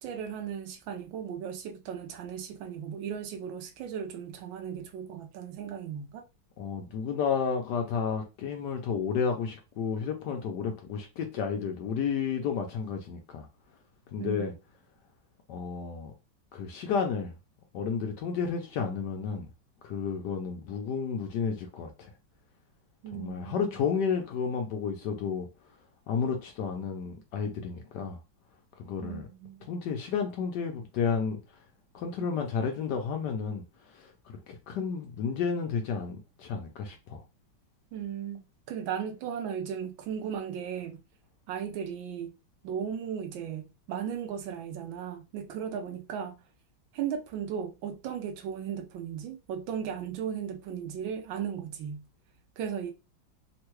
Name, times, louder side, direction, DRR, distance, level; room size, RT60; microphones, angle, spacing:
voice 1, 0.0-6.2 14.2-14.5 23.0-23.7 29.0-29.7 37.9-41.0 41.5-42.3 42.6-46.4 46.9-52.1 52.6-52.9, right 8 dB, 75° right, 1.3 m, -36 dB
voice 2, 6.6-13.5 14.1-14.5 15.5-16.1 16.5-17.3 17.7-19.5 19.8-22.1 23.1-25.5 26.1-28.2 28.8-29.3 29.7-31.4 31.9-33.6 33.9-37.2, left 6 dB, 70° left, 1.0 m, -31 dB
3.6 x 2.2 x 3.0 m
omnidirectional pair, 2.2 m